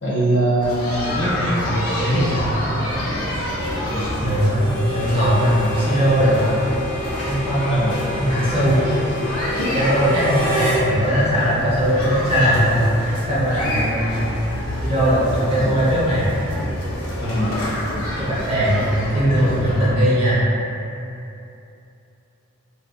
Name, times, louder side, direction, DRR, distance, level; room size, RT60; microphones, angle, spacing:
voice 1, 0.0-1.3 3.8-4.1 7.7-8.0 17.2-17.5, right 1 dB, 55° left, -9 dB, 0.7 m, -21 dB
sound 1, 0.6-19.9, left 1 dB, 85° left, 0.5 m, -27 dB
voice 2, 1.4-2.5 4.2-6.4 7.2-7.8 8.2-8.9 9.6-14.4 14.8-16.3 18.2-20.4, equal, 25° right, -9 dB, 0.5 m, -19 dB
Harmonica, 4.5-10.8, equal, 80° right, 0.8 m, -29 dB
2.7 x 2.2 x 2.2 m, 2.8 s
head